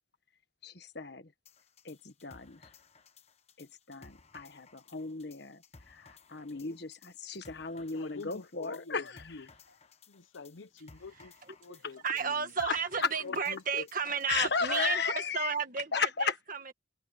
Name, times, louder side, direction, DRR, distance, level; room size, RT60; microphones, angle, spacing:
voice 1, 0.6-1.3 1.8-2.7 3.6-9.1 12.6-13.1 14.3-15.5 15.9-16.4, left 5 dB, 55° left, 1.4 m, -35 dB
sound 1, 1.5-15.2, left 4 dB, 30° left, 1.2 m, -59 dB
voice 2, 7.9-9.5 10.1-11.3 11.6-12.5 13.2-13.9 14.4-14.5, left 4 dB, 75° left, 0.8 m, -46 dB
voice 3, 12.0-16.7, right 6 dB, 40° right, 1.8 m, -33 dB
head